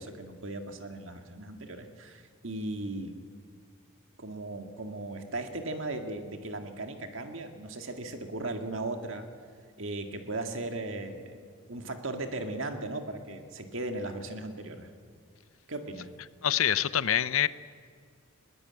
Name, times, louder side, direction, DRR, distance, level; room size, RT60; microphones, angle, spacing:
voice 1, 0.0-3.2 4.2-9.3 9.8-14.9 15.7-16.1, right 2 dB, 65° right, 5 dB, 2.1 m, -37 dB
voice 2, 16.4-17.5, left 10 dB, 75° left, 16 dB, 0.7 m, -25 dB
21.0 x 19.5 x 8.8 m, 2.1 s
head